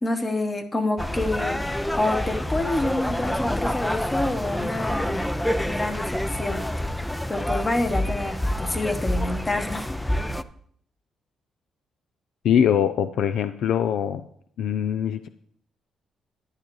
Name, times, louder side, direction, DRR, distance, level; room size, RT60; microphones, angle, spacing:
voice 1, 0.0-5.3 5.7-6.6 7.3-9.9, left 2 dB, 25° left, 6 dB, 1.2 m, -27 dB
sound 1, 1.0-10.4, left 1 dB, 5° left, 0.4 m, -27 dB
voice 2, 12.4-14.3 14.6-15.3, left 8 dB, 75° left, 11 dB, 0.4 m, -22 dB
11.5 x 10.5 x 3.1 m, 0.65 s
cardioid pair, 90°, 0 cm